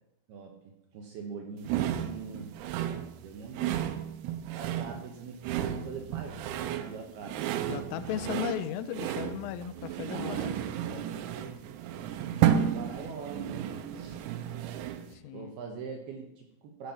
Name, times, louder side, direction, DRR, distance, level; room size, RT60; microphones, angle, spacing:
voice 1, 0.9-2.5 3.2-3.9 4.5-7.4 8.1-8.3 10.1-11.6 12.0-14.3 15.3-16.9, right 5 dB, 70° right, 2 dB, 2.5 m, -43 dB
sound 1, 1.7-15.1, right 10 dB, 90° right, 3.6 m, -33 dB
voice 2, 7.7-10.6 15.1-15.5, left 10 dB, 85° left, 13 dB, 3.2 m, -36 dB
13.5 x 7.4 x 5.9 m, 0.91 s
omnidirectional pair, 6.0 m